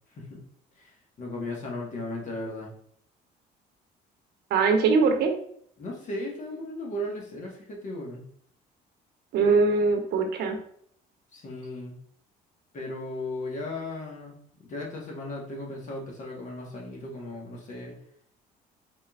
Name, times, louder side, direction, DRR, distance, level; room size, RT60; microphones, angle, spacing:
voice 1, 0.8-2.7 5.8-8.3 11.3-12.0 12.7-17.9, left 1 dB, 45° left, -1 dB, 1.4 m, -36 dB
voice 2, 4.5-5.3 9.3-10.6, right 4 dB, 75° right, 5 dB, 0.8 m, -22 dB
4.1 x 3.7 x 2.4 m, 0.64 s
cardioid pair, 110°, 17 cm